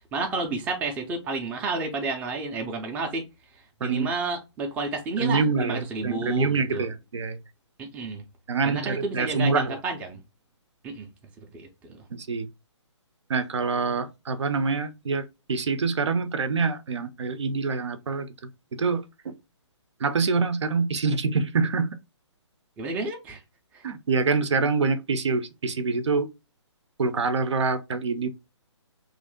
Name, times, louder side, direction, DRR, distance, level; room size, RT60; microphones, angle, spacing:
voice 1, 0.1-3.2 3.5-6.9 7.8-8.2 8.6-10.2 10.8-11.1 11.4-12.1 22.8-23.4 23.7-23.8, right 3 dB, 10° right, 0.4 m, -31 dB
voice 2, 5.2-7.4 8.5-9.8 12.1-12.5 13.3-18.3 18.7-19.4 20.0-22.0 23.8-26.3 27.0-28.3, right 4 dB, 70° right, 0.6 m, -26 dB
3.1 x 2.6 x 3.6 m
hypercardioid pair, 145°, 16 cm